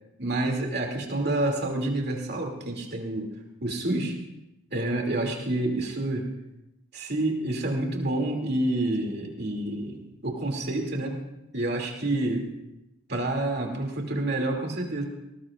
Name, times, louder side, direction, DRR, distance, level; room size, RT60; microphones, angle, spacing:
voice 1, 0.2-3.3 3.6-4.2 4.7-6.3 6.9-11.2 11.5-12.5 13.1-15.0, right 1 dB, 50° right, 1 dB, 2.7 m, -28 dB
19.0 x 19.0 x 2.5 m, 0.90 s
head